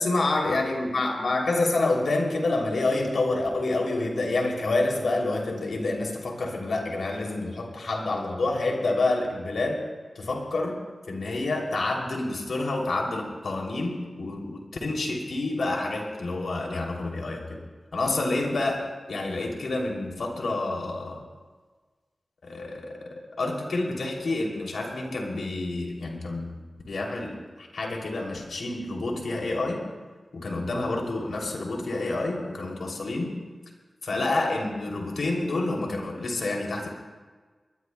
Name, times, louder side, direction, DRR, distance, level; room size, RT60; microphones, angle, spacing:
voice 1, 0.0-9.9 10.1-10.8 11.1-17.6 17.9-21.2 22.4-26.5 26.9-29.9 30.3-33.4 34.0-36.9, left 2 dB, 90° left, 0 dB, 2.9 m, -28 dB
23.5 x 20.0 x 2.2 m, 1.4 s
wide cardioid pair, 95°, 0 cm